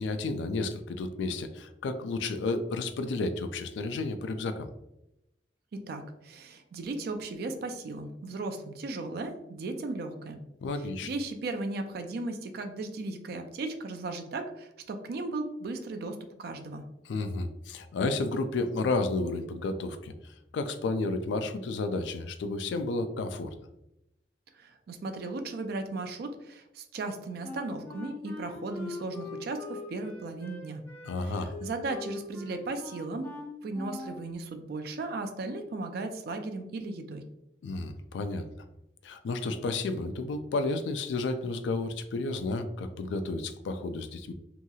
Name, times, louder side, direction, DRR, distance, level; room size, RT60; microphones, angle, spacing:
voice 1, 0.0-4.7 10.6-11.1 17.1-23.5 31.0-31.5 37.6-38.4 39.0-44.3, left 3 dB, 75° left, 9 dB, 0.3 m, -32 dB
voice 2, 5.7-10.4 11.0-16.9 24.5-30.8 31.2-33.3 33.6-37.2, right 2 dB, 60° right, 6 dB, 0.4 m, -36 dB
Wind instrument woodwind instrument, 27.4-34.2, left 3 dB, 15° left, 0.5 m, -42 dB
2.8 x 2.7 x 2.3 m, 0.87 s
head